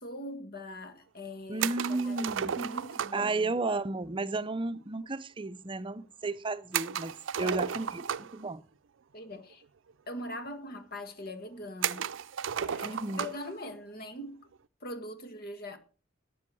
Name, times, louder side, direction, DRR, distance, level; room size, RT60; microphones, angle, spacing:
voice 1, 0.0-3.5 7.4-7.6 9.1-9.6 10.1-12.1 12.6-14.5 14.8-15.8, left 1 dB, 55° left, 1.6 m, -42 dB
voice 2, 1.5-2.5 3.1-8.6 12.8-13.3, right 3 dB, 25° right, 0.6 m, -33 dB
sound 1, 1.6-3.3 6.7-8.5 9.5-9.6 9.9-10.0 10.8-10.9 11.8-13.5, right 8 dB, 85° right, 0.5 m, -34 dB
13.0 x 8.5 x 6.2 m
head